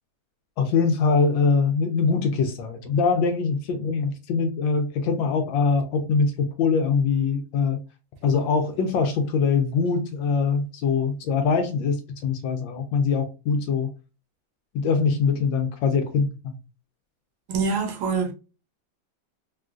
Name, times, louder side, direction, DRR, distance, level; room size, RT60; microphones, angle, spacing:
voice 1, 0.6-7.8 8.2-13.9 14.7-16.6, left 5 dB, 80° left, 1.3 m, -23 dB
voice 2, 17.5-18.3, right 5 dB, 75° right, 1.4 m, -25 dB
3.7 x 2.3 x 2.4 m
omnidirectional pair, 2.1 m